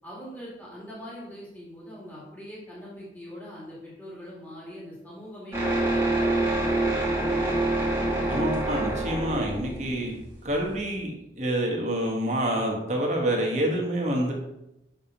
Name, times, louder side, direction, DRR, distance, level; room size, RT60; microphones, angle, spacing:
voice 1, 0.0-6.5, equal, 10° left, -7 dB, 2.0 m, -42 dB
sound 1, 5.5-10.9, right 2 dB, 15° right, 1.4 m, -26 dB
voice 2, 8.2-10.2 10.4-14.3, right 1 dB, 40° right, -1 dB, 1.3 m, -27 dB
6.8 x 5.8 x 2.9 m, 0.89 s
head